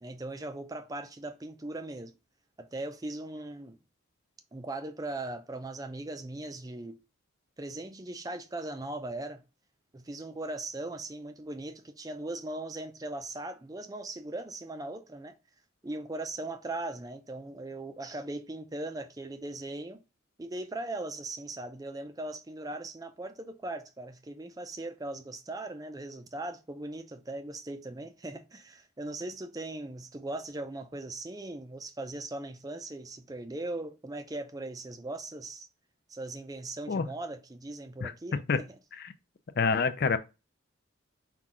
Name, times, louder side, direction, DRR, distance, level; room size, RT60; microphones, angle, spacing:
voice 1, 0.0-2.1 2.6-3.8 4.5-7.0 7.6-9.4 9.9-15.3 15.8-20.0 20.4-35.7 36.1-38.8, right 2 dB, 15° right, 0.4 m, -39 dB
voice 2, 39.6-40.2, left 5 dB, 50° left, 0.4 m, -26 dB
5.8 x 2.4 x 3.6 m
head